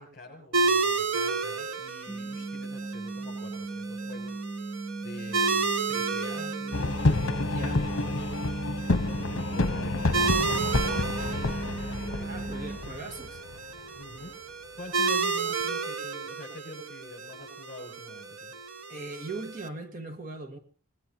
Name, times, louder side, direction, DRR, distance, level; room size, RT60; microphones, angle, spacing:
voice 1, 0.0-4.4 5.0-8.5 9.2-12.5 13.9-14.4 14.8-18.5, left 1 dB, 45° left, 7.5 m, -46 dB
sound 1, 0.5-19.7, right 4 dB, 75° right, 1.3 m, -32 dB
sound 2, 2.1-12.8, right 3 dB, 5° left, 0.8 m, -37 dB
sound 3, 6.7-14.2, left 2 dB, 75° left, 0.9 m, -29 dB
voice 2, 7.5-7.8 12.2-13.4 18.9-20.6, right 2 dB, 40° right, 1.6 m, -39 dB
25.5 x 19.5 x 2.9 m
head